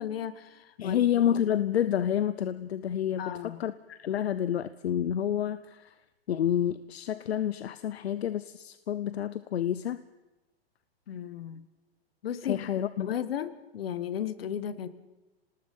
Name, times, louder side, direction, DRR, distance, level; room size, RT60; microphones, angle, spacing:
voice 1, 0.0-1.1 1.4-1.5 3.2-3.6 11.1-11.6 12.2-12.6 13.0-14.9, left 9 dB, 70° left, 14 dB, 1.6 m, -35 dB
voice 2, 0.8-6.0 6.3-10.0 12.4-13.1, left 10 dB, 85° left, 14 dB, 0.9 m, -29 dB
27.0 x 19.0 x 5.5 m, 1.1 s
hypercardioid pair, 155°, 31 cm